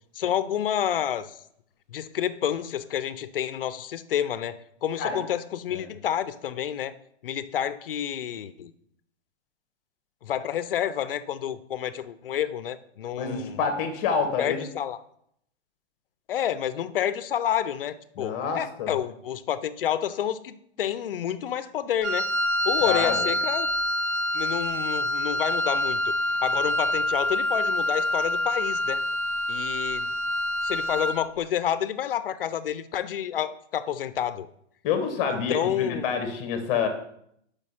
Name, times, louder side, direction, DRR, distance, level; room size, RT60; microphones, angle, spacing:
voice 1, 0.1-1.3 1.9-6.9 7.2-8.7 10.2-13.6 14.4-15.0 16.3-22.3 22.6-23.7 24.3-26.1 26.4-29.0 29.5-30.1 30.6-34.5 35.5-36.1, left 10 dB, 50° left, 14 dB, 0.5 m, -29 dB
voice 2, 13.1-14.6 18.2-18.9 22.8-23.3 34.8-36.9, left 6 dB, 20° left, 6 dB, 0.9 m, -28 dB
Wind instrument woodwind instrument, 22.0-31.3, left 1 dB, 75° right, 0.8 m, -26 dB
6.2 x 5.1 x 5.5 m, 0.71 s
hypercardioid pair, 160°, 35 cm